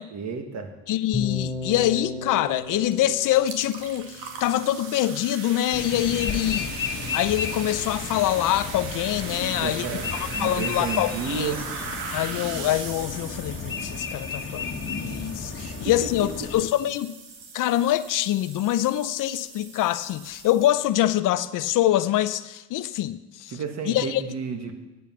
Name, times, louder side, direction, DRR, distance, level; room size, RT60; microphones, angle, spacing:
voice 1, 0.1-0.7 9.4-11.6 15.6-16.1 23.5-24.7, right 5 dB, 50° right, 6 dB, 1.8 m, -32 dB
voice 2, 0.9-6.7 7.1-9.9 10.1-11.5 12.1-17.1 17.5-23.5 23.9-24.2, left 13 dB, 60° left, 14 dB, 0.6 m, -25 dB
sound 1, 1.1-5.2, left 3 dB, 5° right, 4.0 m, -35 dB
sound 2, 2.9-3.0 3.2-21.0, right 5 dB, 85° right, 2.1 m, -39 dB
sound 3, 5.7-16.7, left 5 dB, 35° left, 1.3 m, -33 dB
10.5 x 8.2 x 7.2 m, 1.1 s
cardioid pair, 95°, 35 cm